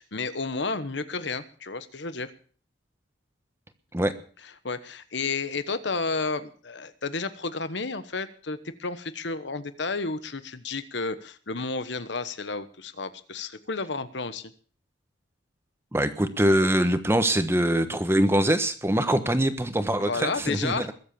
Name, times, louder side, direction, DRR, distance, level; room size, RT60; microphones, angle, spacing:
voice 1, 0.0-2.3 4.6-14.5 20.0-20.9, left 3 dB, 65° left, 12 dB, 1.2 m, -31 dB
voice 2, 15.9-20.9, right 1 dB, 15° right, 9 dB, 1.2 m, -23 dB
21.5 x 7.8 x 6.8 m, 0.43 s
head